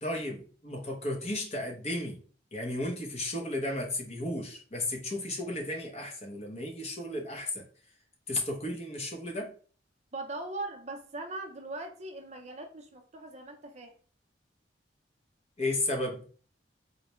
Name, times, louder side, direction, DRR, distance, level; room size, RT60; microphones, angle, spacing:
voice 1, 0.0-2.2 2.5-7.6 8.3-9.5 15.6-16.3, left 1 dB, 35° left, 0.7 m, -34 dB
voice 2, 10.1-13.9, right 2 dB, 40° right, 0.5 m, -40 dB
3.9 x 2.1 x 3.0 m
head